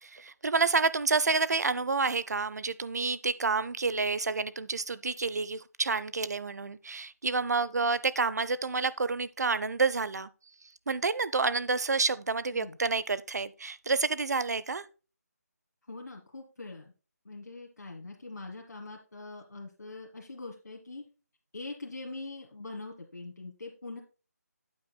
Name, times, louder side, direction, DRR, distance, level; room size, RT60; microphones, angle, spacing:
voice 1, 0.0-10.3 10.9-14.8, right 4 dB, 75° right, 0.6 m, -29 dB
voice 2, 15.9-16.9 17.2-21.0 21.5-24.0, left 3 dB, 80° left, 1.5 m, -43 dB
9.4 x 8.3 x 2.2 m
figure-of-eight pair, 170°, 9 cm